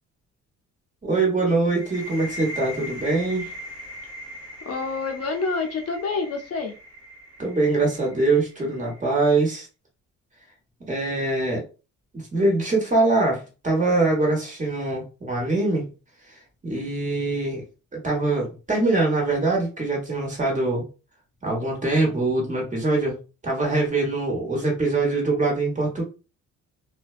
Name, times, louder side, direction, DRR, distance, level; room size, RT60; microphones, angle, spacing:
voice 1, 1.0-3.5 7.4-9.7 10.9-11.6 12.1-15.9 16.6-17.6 18.0-20.8 21.4-23.1 23.4-26.0, right 2 dB, 25° right, -2 dB, 1.2 m, -23 dB
sound 1, 1.8-9.3, left 1 dB, 60° right, 1.3 m, -40 dB
voice 2, 4.7-6.7, left 4 dB, 50° left, 4 dB, 0.6 m, -27 dB
2.5 x 2.2 x 2.4 m, 0.32 s
cardioid pair, 90°, 30 cm